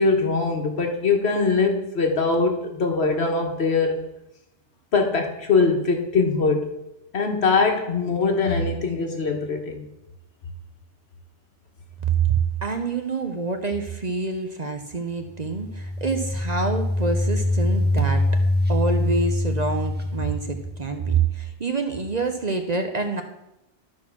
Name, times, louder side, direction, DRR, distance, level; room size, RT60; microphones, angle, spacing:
voice 1, 0.0-4.1 4.9-6.7 7.1-9.9, left 4 dB, 65° left, 3 dB, 1.6 m, -22 dB
voice 2, 12.2-18.2 18.7-23.2, right 4 dB, 40° right, 6 dB, 0.8 m, -26 dB
sound 1, 15.3-21.0, left 1 dB, 10° right, 1.3 m, -24 dB
12.5 x 4.3 x 6.0 m, 0.89 s
omnidirectional pair, 1.2 m